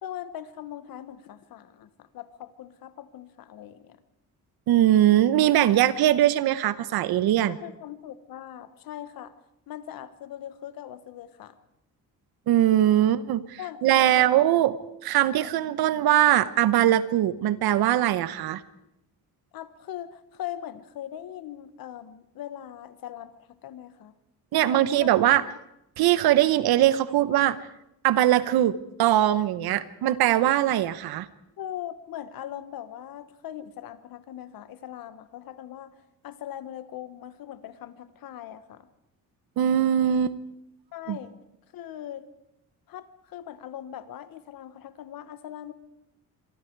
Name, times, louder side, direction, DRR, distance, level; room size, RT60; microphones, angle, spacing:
voice 1, 0.0-4.0 7.5-9.3 9.7-11.6 13.6-14.6 15.7-15.8 19.5-24.1 24.5-25.1 31.6-38.9 40.9-41.3 41.7-42.2 42.9-45.7, left 11 dB, 70° left, 12 dB, 1.5 m, -40 dB
voice 2, 4.7-7.6 12.5-14.8 15.0-18.6 24.5-25.4 26.0-27.6 28.0-31.3 39.6-40.4 41.1-41.2, right 12 dB, 90° right, 15 dB, 1.2 m, -21 dB
25.5 x 23.5 x 4.8 m, 0.84 s
cardioid pair, 165°, 36 cm